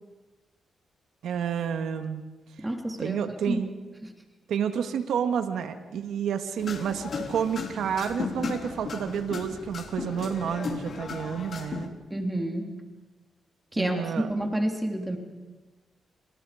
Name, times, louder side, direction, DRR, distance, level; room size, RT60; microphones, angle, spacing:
voice 1, 1.2-2.2 3.0-3.7 4.5-11.9 13.8-14.3, right 8 dB, 85° right, 7 dB, 1.9 m, -30 dB
voice 2, 2.6-3.2 3.5-3.6 4.0-4.1 12.1-12.8 13.7-15.2, right 1 dB, 15° right, 3 dB, 3.4 m, -29 dB
sound 1, 6.6-11.9, left 5 dB, 60° left, 3.4 m, -35 dB
28.0 x 26.5 x 5.2 m, 1.2 s
cardioid pair, 80°, 0 cm